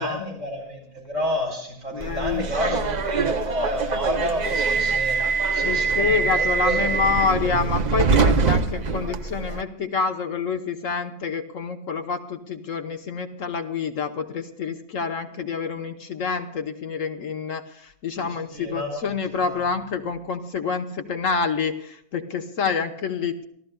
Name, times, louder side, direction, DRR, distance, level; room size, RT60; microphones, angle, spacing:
voice 1, 0.0-5.2 5.5-6.9 18.2-18.3 18.5-19.0 19.3-19.4, equal, 90° right, 2 dB, 4.8 m, -29 dB
voice 2, 1.9-2.5 2.7-3.0 5.6-23.5, left 5 dB, 60° left, 6 dB, 1.3 m, -27 dB
Subway metro underground, 2.0-9.6, right 4 dB, 45° right, 0.5 m, -23 dB
27.5 x 14.5 x 2.2 m, 0.73 s
omnidirectional pair, 1.5 m